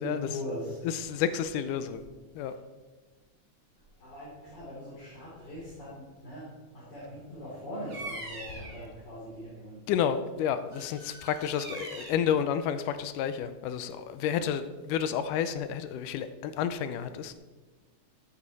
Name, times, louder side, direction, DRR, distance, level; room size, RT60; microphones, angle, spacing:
voice 1, 0.0-0.8 4.0-9.8, equal, 35° left, -8 dB, 3.4 m, -40 dB
voice 2, 0.8-2.0 2.4-2.5 9.9-17.3, left 8 dB, 80° left, 11 dB, 2.1 m, -30 dB
Bird vocalization bird call bird song, 7.9-8.8 10.7-12.3, right 2 dB, 35° right, 2.9 m, -42 dB
14.0 x 8.6 x 4.1 m, 1.3 s
omnidirectional pair, 3.8 m